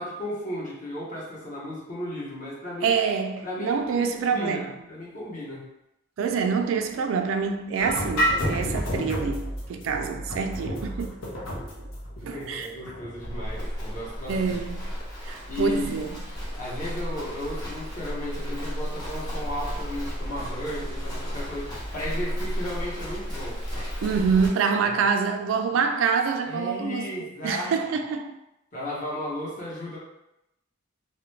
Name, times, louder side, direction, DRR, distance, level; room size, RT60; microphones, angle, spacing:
voice 1, 0.0-2.9 3.4-5.7 12.2-14.6 15.5-15.9 16.6-23.6 24.8-25.0 26.5-27.7 28.7-30.0, left 1 dB, 40° left, 0.8 m, -34 dB
voice 2, 2.8-4.8 6.2-11.2 12.2-12.7 14.3-14.9 15.2-16.2 24.0-28.4, right 5 dB, 80° right, 0.3 m, -26 dB
sound 1, 7.8-14.5, equal, 85° left, 0.7 m, -30 dB
Livestock farm animals working animals, 13.2-24.5, equal, 20° left, 0.7 m, -33 dB
2.3 x 2.1 x 3.1 m
head